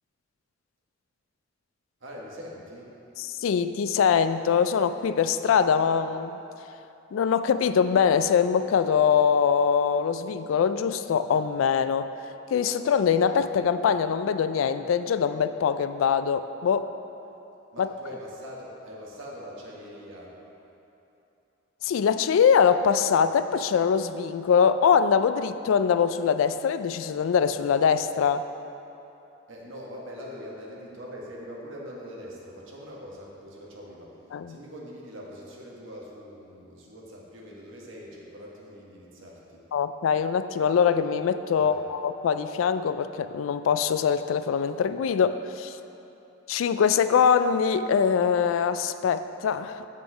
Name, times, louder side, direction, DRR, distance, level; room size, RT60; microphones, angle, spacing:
voice 1, 2.0-2.9 17.7-20.3 29.5-34.1 34.5-39.6 41.5-41.8, equal, 80° right, -3 dB, 1.4 m, -42 dB
voice 2, 3.2-6.4 7.1-12.1 12.5-16.9 17.8-17.9 21.8-28.4 34.3-34.6 39.7-45.8 46.5-49.9, left 7 dB, 85° left, 12 dB, 0.3 m, -23 dB
7.9 x 5.6 x 5.0 m, 2.9 s
head